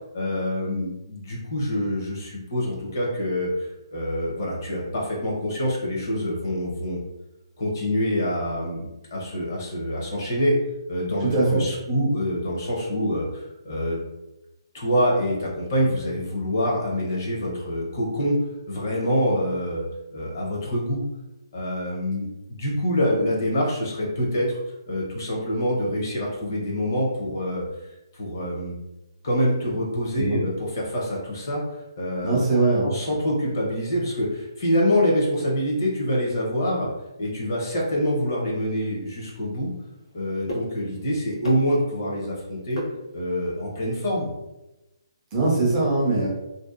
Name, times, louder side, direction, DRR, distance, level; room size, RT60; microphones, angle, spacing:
voice 1, 0.1-7.0 7.6-10.6 10.9-14.0 14.7-18.4 18.7-19.9 20.1-21.0 21.5-24.6 24.9-27.6 28.1-28.8 29.2-32.4 32.8-36.9 37.2-39.7 40.1-42.8 43.1-44.3, equal, 40° left, -3 dB, 0.7 m, -26 dB
voice 2, 11.2-11.6 30.2-30.4 32.2-32.9 45.3-46.3, right 2 dB, 15° right, -5 dB, 0.4 m, -21 dB
sound 1, 38.5-43.6, left 1 dB, 80° left, 0.9 m, -39 dB
2.6 x 2.1 x 2.4 m, 0.96 s
hypercardioid pair, 175°, 3 cm